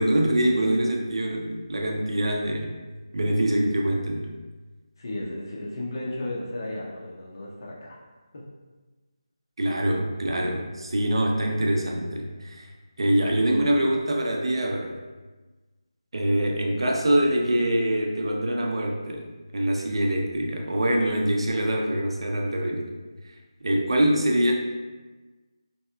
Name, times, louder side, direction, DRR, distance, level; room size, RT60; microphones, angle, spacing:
voice 1, 0.0-2.7 3.1-4.3 9.6-12.7 13.0-15.0 16.1-19.3 19.5-22.9 23.6-24.5, right 1 dB, 70° right, 0 dB, 0.5 m, -24 dB
voice 2, 5.0-8.0 8.3-8.4, left 1 dB, 45° left, -4 dB, 0.5 m, -34 dB
3.2 x 2.7 x 2.2 m, 1.3 s
figure-of-eight pair, 170°, 3 cm